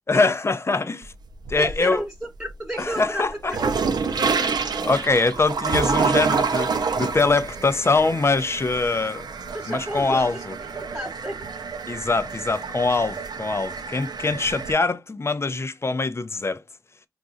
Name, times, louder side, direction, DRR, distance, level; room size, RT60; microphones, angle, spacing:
voice 1, 0.1-1.1 1.5-2.0 2.8-3.6 4.8-9.3 9.7-10.5 11.9-16.6, left 3 dB, 35° left, 0.5 m, -23 dB
sound 1, 1.0-2.0 2.4-14.7, right 5 dB, 65° right, 0.5 m, -28 dB
voice 2, 1.6-2.1 2.4-3.7 4.0-4.4 9.5-10.4 10.7-11.4, right 1 dB, 10° right, 1.0 m, -32 dB
3.8 x 2.4 x 2.5 m
cardioid pair, 40°, 8 cm